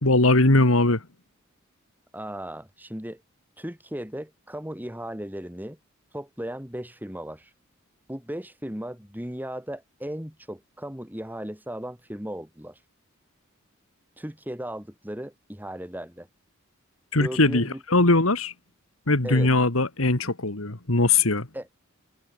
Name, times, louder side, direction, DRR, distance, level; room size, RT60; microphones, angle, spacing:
voice 1, 0.0-1.0 17.1-18.5 19.1-21.5, left 2 dB, 80° left, 2.6 m, -20 dB
voice 2, 2.1-3.2 3.6-5.8 6.1-7.5 8.1-12.8 14.2-16.3 17.1-17.8 19.2-19.5 21.5-21.7, equal, 10° right, 3.7 m, -36 dB
head